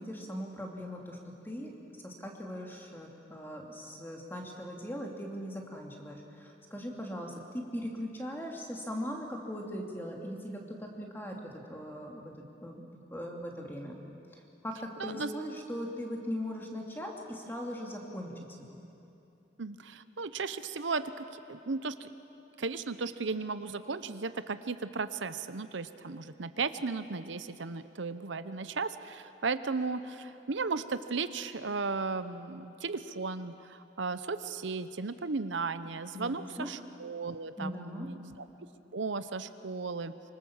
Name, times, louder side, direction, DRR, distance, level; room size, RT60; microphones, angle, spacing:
voice 1, 0.0-1.7 2.0-14.0 14.3-18.3 18.6-18.8 36.1-36.7 37.6-38.1, equal, 10° left, 0 dB, 2.6 m, -40 dB
voice 2, 15.0-15.3 19.6-22.1 22.6-38.4 38.9-40.1, right 4 dB, 75° right, 12 dB, 0.8 m, -35 dB
25.0 x 25.0 x 7.3 m, 2.8 s
head